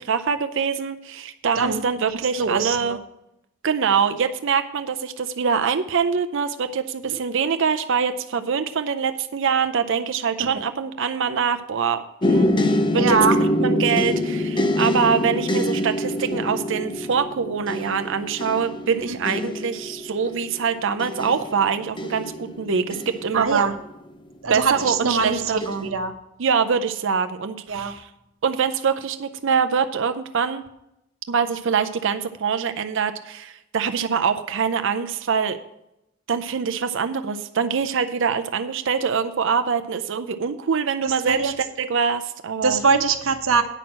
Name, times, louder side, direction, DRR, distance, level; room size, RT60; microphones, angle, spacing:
voice 1, 0.0-3.0 3.6-13.2 13.6-23.7 24.5-25.9 26.4-28.1 28.4-30.6 31.3-35.6 36.3-42.8, right 6 dB, 65° right, 9 dB, 0.6 m, -24 dB
voice 2, 2.1-3.0 7.1-7.2 10.4-10.5 13.0-13.3 23.3-23.7 24.4-26.1 27.7-27.9 41.0-41.5 42.6-43.6, right 4 dB, 85° right, 7 dB, 1.0 m, -23 dB
sound 1, 12.2-24.1 24.8-25.2 25.6-25.9, left 1 dB, 25° left, 0.6 m, -25 dB
8.9 x 6.2 x 7.2 m, 0.85 s
head